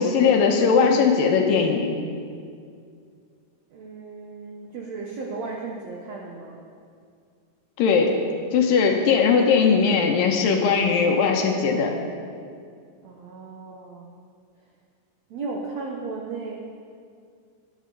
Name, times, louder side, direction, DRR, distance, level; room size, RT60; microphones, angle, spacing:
voice 1, 0.0-1.9 7.8-8.2 8.5-11.9, left 5 dB, 75° left, 2 dB, 2.6 m, -19 dB
voice 2, 3.7-6.6 13.0-14.1 15.3-16.8, right 4 dB, 75° right, -1 dB, 1.6 m, -35 dB
20.0 x 10.0 x 3.9 m, 2.2 s
omnidirectional pair, 4.4 m